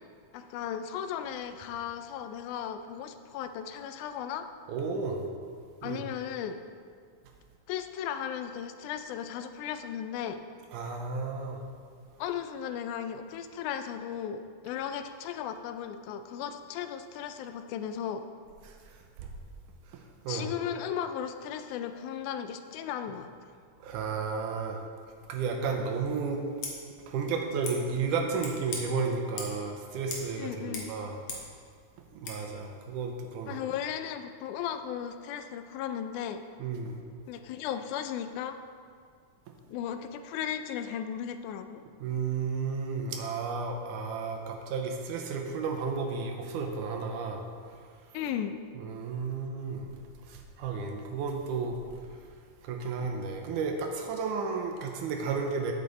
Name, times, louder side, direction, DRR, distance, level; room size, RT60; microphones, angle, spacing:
voice 1, 0.3-4.5 5.8-6.6 7.7-10.4 12.2-18.3 20.3-23.3 30.4-30.9 33.5-36.4 37.3-38.6 39.7-41.8 48.1-48.6, left 9 dB, 85° left, 9 dB, 2.0 m, -36 dB
voice 2, 4.7-5.3 5.8-6.0 10.7-11.6 20.2-20.5 23.8-24.8 25.3-26.4 27.1-31.2 32.2-33.6 36.6-37.0 42.0-47.4 48.8-50.0 50.3-51.8 52.6-55.7, right 5 dB, 85° right, 3 dB, 2.4 m, -32 dB
Scissors, 26.5-26.7 27.6-27.8 28.4-28.8 29.4-29.6 30.1-30.3 30.6-31.5 32.2-32.4, left 4 dB, 65° left, 2.3 m, -39 dB
8.5 x 8.2 x 4.0 m, 2.1 s
omnidirectional pair, 3.6 m